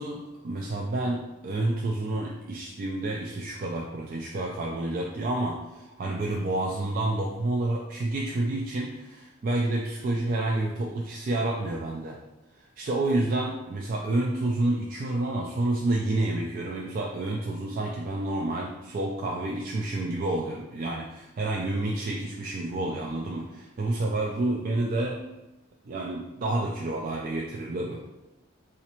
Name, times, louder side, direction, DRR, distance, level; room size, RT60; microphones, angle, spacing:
voice 1, 0.0-12.2 12.6-25.2 25.8-28.0, right 2 dB, 45° right, -1 dB, 0.3 m, -29 dB
4.0 x 2.5 x 2.9 m, 0.95 s
head